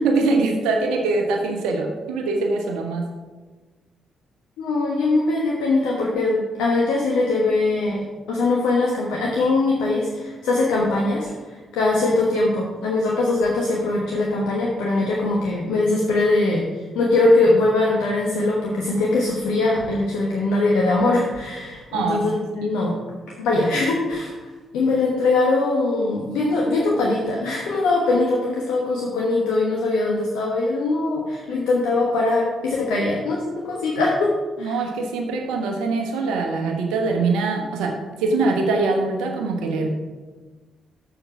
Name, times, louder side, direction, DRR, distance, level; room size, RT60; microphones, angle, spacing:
voice 1, 0.0-3.0 21.9-22.2 34.6-37.9 38.2-39.9, right 3 dB, 75° right, 2 dB, 1.1 m, -23 dB
voice 2, 4.6-11.3 11.7-16.6 16.9-23.0 23.4-24.3 24.7-34.8, left 2 dB, 75° left, -3 dB, 1.2 m, -21 dB
7.0 x 7.0 x 5.9 m, 1.3 s
hypercardioid pair, 40°, 0 cm